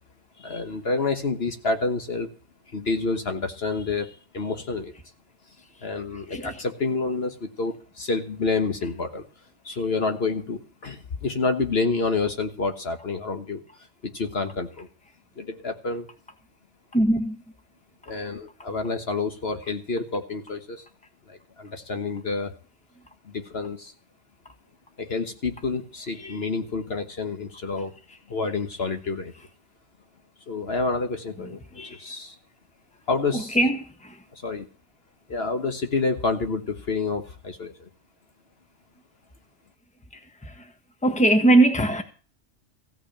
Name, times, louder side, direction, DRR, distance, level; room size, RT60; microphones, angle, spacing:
voice 1, 0.4-2.3 2.7-4.9 5.8-9.2 9.6-13.6 14.0-14.9 15.4-16.1 18.1-20.8 21.3-22.6 23.2-23.9 25.0-27.9 28.3-29.3 30.5-32.4 33.1-33.6 34.3-34.7 35.3-37.9, left 3 dB, 50° left, 1.5 m, -28 dB
voice 2, 16.9-17.4 33.5-34.2 40.4-40.5 41.0-42.0, right 2 dB, 5° left, 1.4 m, -20 dB
15.5 x 6.1 x 8.6 m
omnidirectional pair, 1.3 m